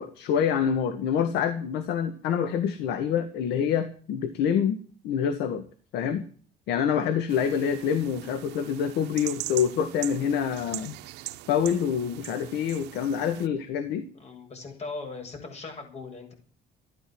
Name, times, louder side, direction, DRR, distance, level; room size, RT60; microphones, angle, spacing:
voice 1, 0.0-4.8 5.0-5.6 5.9-6.2 6.7-11.0 11.5-14.1, left 8 dB, 85° left, 10 dB, 1.9 m, -26 dB
sound 1, 7.3-13.5, right 17 dB, 90° right, 1.0 m, -41 dB
voice 2, 14.1-16.3, left 3 dB, 40° left, 4 dB, 7.9 m, -39 dB
15.0 x 11.0 x 8.0 m, 0.43 s
cardioid pair, 110°, 17 cm